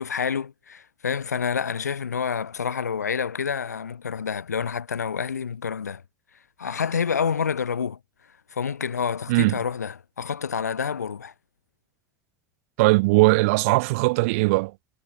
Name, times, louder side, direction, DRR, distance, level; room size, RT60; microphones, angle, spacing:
voice 1, 0.0-6.0 6.6-8.0 8.5-11.3, left 6 dB, 80° left, 3.5 m, -28 dB
voice 2, 12.8-14.7, right 24 dB, 60° right, 0.6 m, -19 dB
figure-of-eight pair, 70°, 9 cm